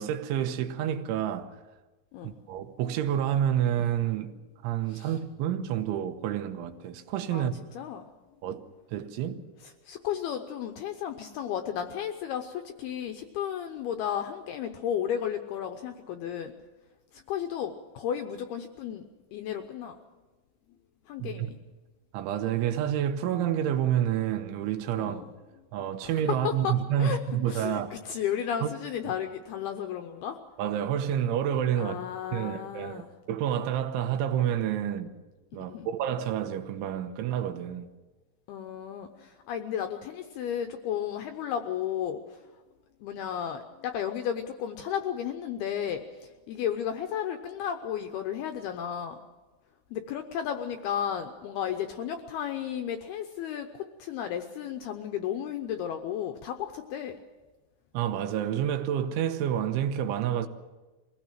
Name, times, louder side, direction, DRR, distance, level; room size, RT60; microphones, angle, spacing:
voice 1, 0.0-1.6 2.2-4.3 4.6-7.6 8.4-9.4 21.2-21.5 22.1-25.2 25.7-28.0 28.6-28.7 30.6-32.0 32.3-33.0 33.3-35.1 35.5-37.9 57.9-60.5, right 10 dB, 80° right, 3.4 m, -29 dB
voice 2, 7.3-8.1 9.6-16.5 17.1-19.0 19.3-20.0 21.1-21.6 25.0-25.3 26.0-26.1 26.4-26.7 27.0-27.2 27.5-30.4 31.8-33.1 35.6-35.9 38.5-42.4 43.0-49.2 49.9-57.2, left 9 dB, 75° left, 2.3 m, -33 dB
23.5 x 16.5 x 7.4 m
omnidirectional pair, 5.5 m